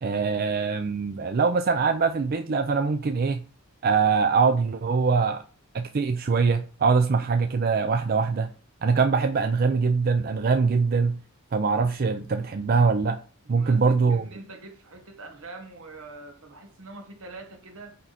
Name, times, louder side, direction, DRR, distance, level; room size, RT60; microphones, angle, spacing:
voice 1, 0.0-3.4 3.8-5.4 5.7-8.5 8.8-11.2 11.5-13.2 13.5-14.2, right 5 dB, 45° right, 0.4 m, -23 dB
voice 2, 13.4-18.0, right 2 dB, 70° right, 1.5 m, -44 dB
9.0 x 3.7 x 4.2 m
head